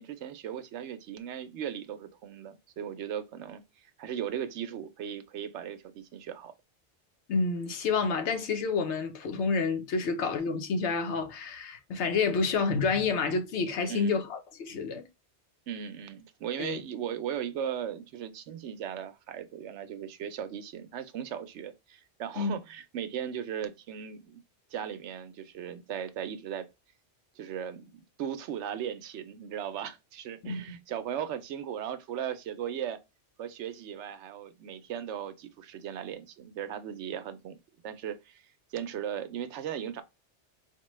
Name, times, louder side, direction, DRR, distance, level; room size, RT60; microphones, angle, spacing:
voice 1, 0.0-6.5 13.9-14.2 15.7-24.4 24.7-26.7 27.4-33.0 33.4-37.6 37.8-38.4 38.7-40.0, right 9 dB, 85° right, 0.9 m, -37 dB
voice 2, 7.3-15.0 16.6-16.8 22.4-22.5 30.4-30.6, left 4 dB, 85° left, 1.1 m, -29 dB
4.4 x 2.2 x 3.0 m
omnidirectional pair, 1.2 m